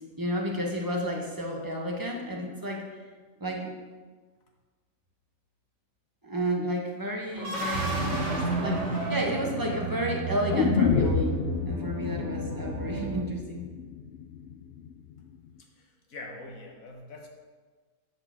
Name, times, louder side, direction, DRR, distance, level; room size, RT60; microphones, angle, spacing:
voice 1, 0.0-2.8 3.4-3.7 6.2-11.4 11.7-13.7, equal, 15° right, 0 dB, 1.0 m, -31 dB
sound 1, 7.3-10.3, right 2 dB, 60° right, 1.8 m, -31 dB
sound 2, 7.7-13.2, right 9 dB, 90° right, 1.1 m, -35 dB
sound 3, 10.5-14.5 14.8-14.9, left 8 dB, 65° left, 0.6 m, -29 dB
voice 2, 15.6-17.3, left 2 dB, 85° left, 1 dB, 1.6 m, -44 dB
7.9 x 4.4 x 7.1 m, 1.4 s
omnidirectional pair, 1.4 m